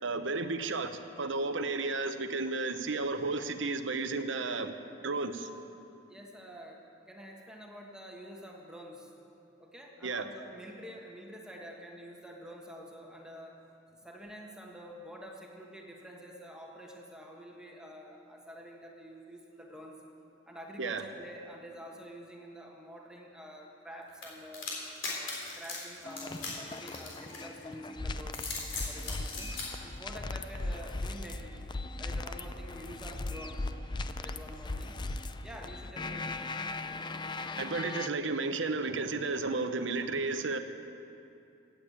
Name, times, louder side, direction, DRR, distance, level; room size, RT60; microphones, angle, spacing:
voice 1, 0.0-0.9 1.2-4.7 5.0-5.5 10.0-10.2 20.8-21.0 37.6-40.6, right 3 dB, 75° right, 8 dB, 0.9 m, -32 dB
voice 2, 6.1-9.1 9.6-13.6 14.0-20.0 20.5-24.7 25.1-28.6 28.9-31.6 32.0-33.7 34.2-35.0 35.4-36.4, equal, 5° right, -1 dB, 1.4 m, -48 dB
sound 1, 24.2-27.7 28.2-29.7, left 4 dB, 80° left, 3.7 m, -39 dB
sound 2, 26.0-38.1, left 2 dB, 25° left, 0.5 m, -38 dB
15.0 x 8.7 x 8.7 m, 2.7 s
head